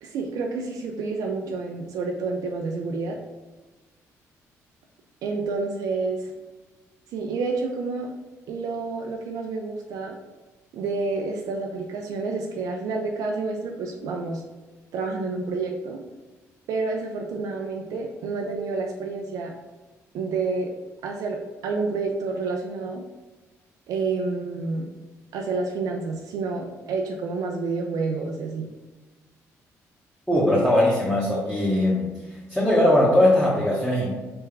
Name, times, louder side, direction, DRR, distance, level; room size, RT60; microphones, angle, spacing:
voice 1, 0.0-3.2 5.2-6.3 7.1-8.1 8.5-10.2 10.7-14.4 14.9-16.0 16.7-19.5 20.1-20.7 21.0-23.0 23.9-24.9 25.3-28.7, right 4 dB, 80° right, 1 dB, 0.5 m, -29 dB
voice 2, 30.3-32.1 32.5-34.1, left 1 dB, ahead, -8 dB, 1.2 m, -20 dB
3.4 x 3.4 x 3.2 m, 1.2 s
cardioid pair, 80°, 6 cm